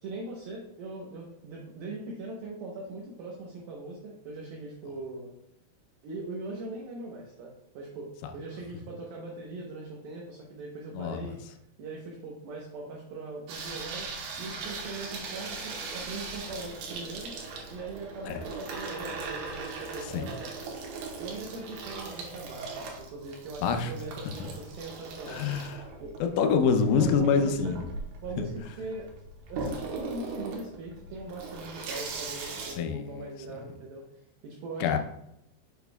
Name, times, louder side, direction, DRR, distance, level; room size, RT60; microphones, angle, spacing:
voice 1, 0.0-5.3 6.0-11.4 11.8-14.1 14.4-17.4 17.7-20.5 21.2-25.4 26.0-26.5 26.9-27.8 28.2-29.1 29.5-34.0 34.4-35.0, right 2 dB, 90° right, -2 dB, 2.1 m, -40 dB
Water tap faucet / Sink (filling or washing), 13.5-32.7, right 4 dB, 70° right, 2.5 m, -39 dB
voice 2, 25.3-25.8 26.4-27.8 32.8-33.3 34.8-35.0, left 6 dB, 85° left, 7 dB, 3.1 m, -25 dB
7.1 x 7.0 x 2.3 m, 0.82 s
omnidirectional pair, 5.5 m